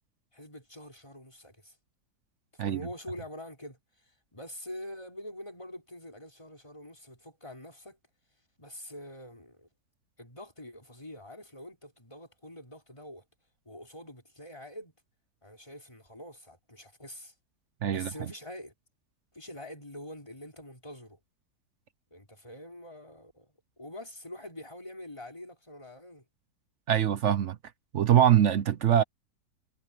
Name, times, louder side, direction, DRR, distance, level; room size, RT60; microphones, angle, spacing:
voice 1, 0.3-1.8 2.5-8.0 8.6-9.7 10.2-13.2 13.6-14.9 15.4-17.3 17.9-18.7 19.3-21.2 22.1-26.2, left 1 dB, 15° left, 4.6 m, -45 dB
voice 2, 17.8-18.3 26.9-27.6 27.9-29.0, right 10 dB, 60° right, 0.8 m, -23 dB
omnidirectional pair, 1.7 m